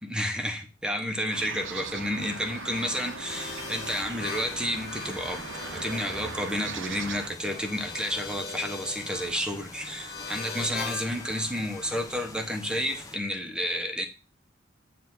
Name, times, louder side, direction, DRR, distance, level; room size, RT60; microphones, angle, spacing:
voice 1, 0.0-14.0, equal, 5° right, 1.0 m, -31 dB
sound 1, 1.3-7.3, right 5 dB, 80° right, 0.8 m, -39 dB
sound 2, 2.2-12.2, left 5 dB, 55° left, 1.4 m, -41 dB
sound 3, 3.3-13.2, left 2 dB, 20° left, 1.0 m, -45 dB
9.2 x 3.4 x 6.1 m
head